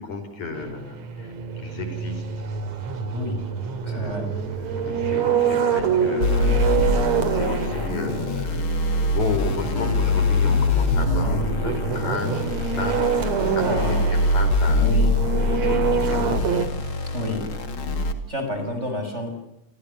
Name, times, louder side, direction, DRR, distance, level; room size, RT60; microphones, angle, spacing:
voice 1, 0.0-2.3 3.8-14.9 15.3-16.5, left 3 dB, 65° left, 8 dB, 6.1 m, -33 dB
sound 1, 0.6-16.7, right 6 dB, 60° right, 3.5 m, -26 dB
voice 2, 3.1-3.4 3.9-4.3 11.1-11.4 13.6-14.1 14.8-15.1 17.1-17.5 18.3-19.3, left 1 dB, 20° right, 6 dB, 6.5 m, -29 dB
sound 2, 6.2-18.1, left 2 dB, 45° left, 3.1 m, -23 dB
29.0 x 26.0 x 7.0 m, 0.84 s
omnidirectional pair, 3.6 m